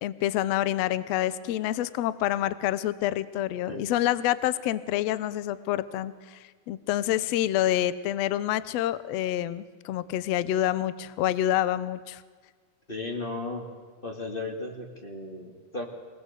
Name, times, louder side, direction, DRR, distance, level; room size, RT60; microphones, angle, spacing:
voice 1, 0.0-6.1 6.7-12.2, left 13 dB, 75° left, 16 dB, 1.5 m, -27 dB
voice 2, 12.9-13.7 14.0-15.8, left 2 dB, 20° left, 3 dB, 2.1 m, -35 dB
25.5 x 18.0 x 8.3 m, 1.5 s
omnidirectional pair, 4.0 m